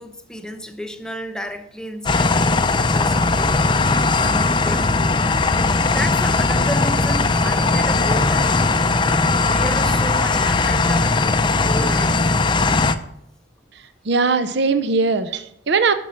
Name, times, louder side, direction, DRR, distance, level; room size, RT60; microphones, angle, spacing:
voice 1, 0.0-3.7 4.2-4.9 5.9-8.5 9.4-12.2, equal, 5° left, 6 dB, 0.8 m, -32 dB
sound 1, 2.1-13.0, left 3 dB, 25° left, 0.5 m, -18 dB
Engine, 3.8-12.2, right 1 dB, 45° right, 3.6 m, -39 dB
voice 2, 14.1-15.9, right 4 dB, 60° right, 12 dB, 0.6 m, -19 dB
11.5 x 6.1 x 5.8 m, 0.76 s
head